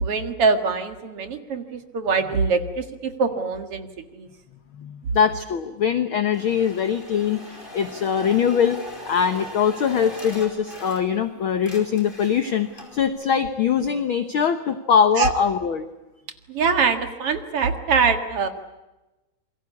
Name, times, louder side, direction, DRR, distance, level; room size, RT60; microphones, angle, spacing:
voice 1, 0.0-3.9 4.1-4.3 15.2-15.3 16.5-18.5, right 5 dB, 50° right, 8 dB, 2.4 m, -23 dB
voice 2, 4.7-8.8 9.1-15.9, left 7 dB, 65° left, 10 dB, 1.3 m, -22 dB
sound 1, 6.3-11.3 11.5-13.1, left 2 dB, 15° left, 4.8 m, -40 dB
28.0 x 23.0 x 8.4 m, 1.0 s
omnidirectional pair, 3.9 m